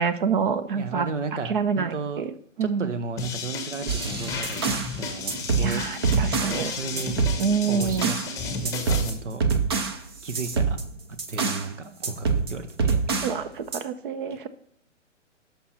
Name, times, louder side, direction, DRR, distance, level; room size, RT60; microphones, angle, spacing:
voice 1, 0.0-1.1 1.5-2.3 2.6-2.9 5.6-6.7 7.4-8.1 13.2-14.5, right 6 dB, 40° right, 0.8 m, -26 dB
voice 2, 0.7-2.2 2.6-5.8 6.6-7.2 7.7-9.4 10.2-10.8 11.3-13.0 14.3-14.5, right 4 dB, 70° right, 1.2 m, -34 dB
sound 1, 3.2-9.1, left 3 dB, 10° left, 1.0 m, -33 dB
sound 2, 3.9-4.9 5.3-6.6 7.0-8.3 8.6-11.7 12.0-13.4 13.7-13.8, right 5 dB, 20° right, 0.4 m, -26 dB
11.0 x 6.1 x 4.2 m
figure-of-eight pair, 125°, 38 cm